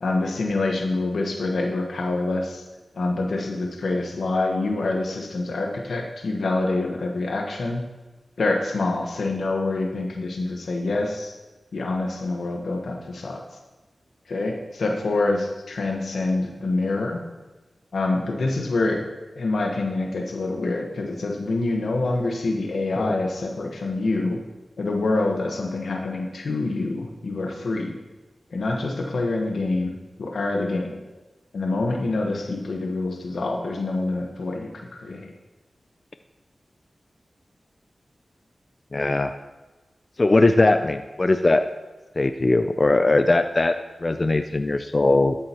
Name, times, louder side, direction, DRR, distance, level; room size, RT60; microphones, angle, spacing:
voice 1, 0.0-2.6 2.9-7.8 8.4-11.3 11.7-13.4 14.3-17.2 17.9-19.0 19.3-24.4 24.8-27.9 28.5-29.9 30.2-31.0 31.5-34.7 35.0-35.3, left 2 dB, 85° left, 2 dB, 1.2 m, -26 dB
voice 2, 38.9-39.3 40.2-41.6 42.2-45.4, left 2 dB, 45° left, 9 dB, 0.4 m, -20 dB
12.5 x 7.6 x 3.0 m, 1.2 s
cardioid pair, 45°, 0 cm